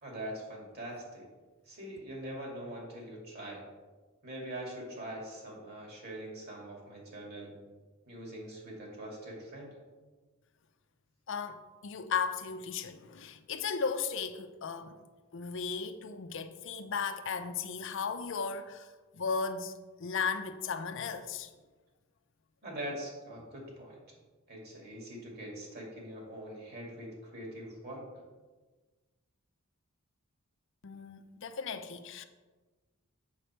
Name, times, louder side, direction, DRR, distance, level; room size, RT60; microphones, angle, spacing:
voice 1, 0.0-1.2 1.7-3.6 4.2-7.6 8.1-9.8 22.6-24.0 24.5-28.0, right 1 dB, 50° right, 2.6 m, -43 dB
voice 2, 11.3-15.0 15.3-18.9 19.1-19.7 20.0-21.5 30.8-32.2, left 5 dB, 60° left, 0.6 m, -36 dB
7.4 x 6.5 x 4.4 m
head